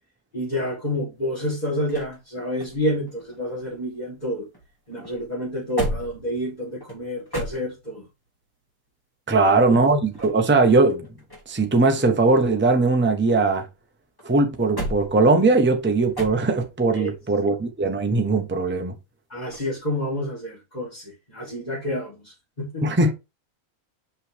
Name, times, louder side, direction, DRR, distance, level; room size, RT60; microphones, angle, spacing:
voice 1, 0.3-4.5 4.9-8.0 9.3-9.8 16.9-17.1 19.3-22.9, equal, 35° left, 3.4 m, -29 dB
sound 1, 1.1-4.3 4.5-8.2 9.9-11.7 12.0-13.7 14.2-16.8 19.4-19.8, right 1 dB, 15° left, 2.6 m, -36 dB
voice 2, 9.3-11.1 11.5-13.7 14.2-18.9 22.8-23.1, right 3 dB, 10° right, 0.8 m, -20 dB
5.6 x 5.6 x 3.5 m
omnidirectional pair, 1.3 m